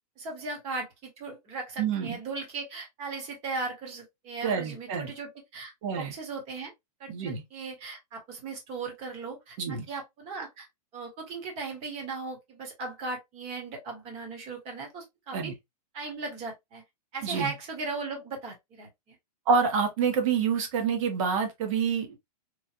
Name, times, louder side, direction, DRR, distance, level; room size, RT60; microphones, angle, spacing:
voice 1, 0.2-6.7 7.0-10.7 10.9-15.5 15.9-16.8 17.1-19.1, right 3 dB, 30° right, 1.3 m, -38 dB
voice 2, 1.8-2.2 4.4-5.1 5.8-6.1 7.1-7.4 9.6-9.8 15.3-15.5 17.2-17.5 19.5-22.2, right 6 dB, 50° right, 1.2 m, -27 dB
3.1 x 2.4 x 2.5 m
hypercardioid pair, 150°, 21 cm